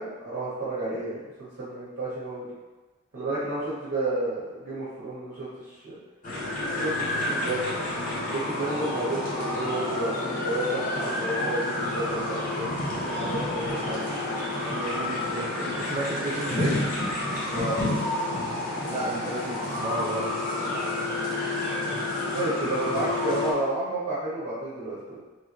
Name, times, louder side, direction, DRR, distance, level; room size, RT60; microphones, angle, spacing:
voice 1, 0.0-2.4 3.1-5.9 6.4-7.6 8.3-14.0 17.4-17.8 21.8-21.9 22.3-25.2, right 2 dB, 55° right, -11 dB, 1.4 m, -31 dB
sound 1, 6.2-23.5, left 2 dB, 35° left, 0.8 m, -29 dB
voice 2, 14.7-16.8 18.9-20.4 21.9-22.1 22.9-23.1, right 1 dB, 30° right, -4 dB, 0.4 m, -33 dB
3.7 x 2.9 x 3.0 m, 1.2 s
head